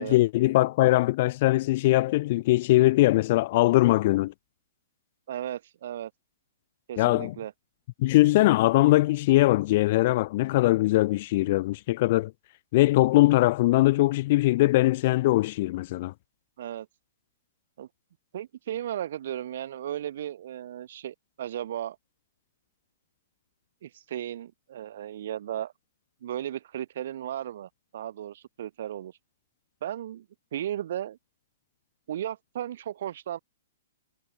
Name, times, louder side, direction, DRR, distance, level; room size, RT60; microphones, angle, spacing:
voice 1, 0.0-4.3 7.0-7.3 8.0-12.3 12.7-16.1, left 18 dB, 35° left, 0.6 m, -21 dB
voice 2, 5.3-6.1 6.9-7.5 16.6-16.9 17.8-17.9 18.3-22.0 23.8-25.7 26.2-29.1 29.8-30.3 30.5-31.2 32.1-33.4, right 11 dB, 50° right, 4.0 m, -35 dB
hypercardioid pair, 170°, 0 cm